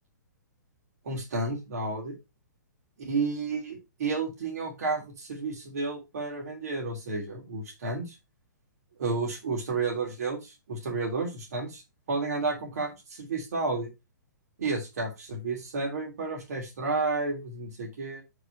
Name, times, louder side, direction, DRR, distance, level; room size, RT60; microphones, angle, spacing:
voice 1, 1.0-2.2 3.0-8.1 9.0-11.8 12.1-13.9 14.6-18.2, right 3 dB, 55° right, 0 dB, 3.0 m, -31 dB
7.9 x 5.0 x 4.4 m, 0.24 s
figure-of-eight pair, 115°, 10 cm